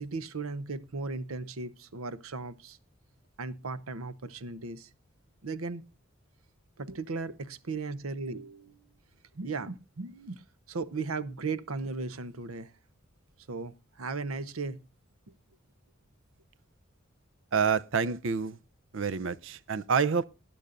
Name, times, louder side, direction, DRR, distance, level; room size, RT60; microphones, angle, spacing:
voice 1, 0.0-2.8 3.4-4.9 5.4-5.8 6.8-8.9 9.3-10.4 10.7-12.7 13.5-14.8, right 4 dB, 90° right, 0.8 m, -36 dB
voice 2, 17.5-18.6 18.9-20.2, right 6 dB, 65° right, 0.5 m, -28 dB
20.0 x 10.0 x 2.5 m
head